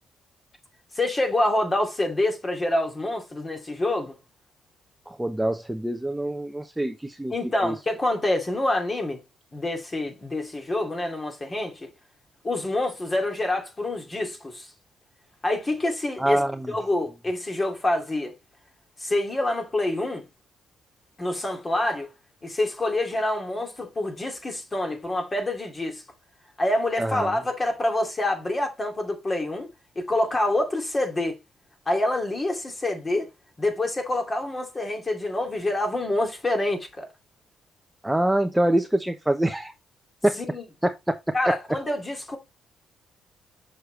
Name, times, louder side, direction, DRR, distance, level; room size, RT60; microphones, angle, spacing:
voice 1, 0.9-4.1 7.3-9.2 9.5-11.9 12.4-14.7 15.4-16.4 16.7-18.3 19.0-20.3 21.2-22.1 22.4-26.0 26.6-29.7 30.0-31.4 31.9-33.3 33.6-37.1 40.4-40.6 41.3-42.4, left 1 dB, 25° left, 2.6 m, -26 dB
voice 2, 5.1-7.3 7.6-7.7 16.2-16.7 27.0-27.3 38.0-39.7 40.2-40.4 40.8-41.1, right 1 dB, 5° right, 0.8 m, -25 dB
6.6 x 6.5 x 3.3 m
cardioid pair, 90°, 0 cm